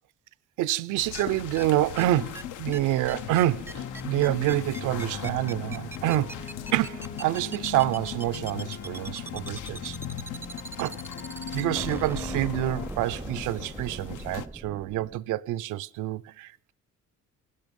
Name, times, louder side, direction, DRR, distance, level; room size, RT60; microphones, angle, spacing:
voice 1, 0.6-10.0 10.8-11.0 11.5-16.7, right 15 dB, 90° right, 0.5 m, -27 dB
sound 1, 1.0-14.5, left 11 dB, 80° left, 0.8 m, -40 dB
sound 2, 1.1-1.2 1.6-1.7 2.0-2.1 2.3-2.4 2.7-2.8 3.1-15.2, right 2 dB, 10° right, 0.5 m, -39 dB
sound 3, 3.7-12.9, left 5 dB, 35° left, 0.8 m, -40 dB
17.5 x 12.0 x 5.2 m
cardioid pair, 90°, 30 cm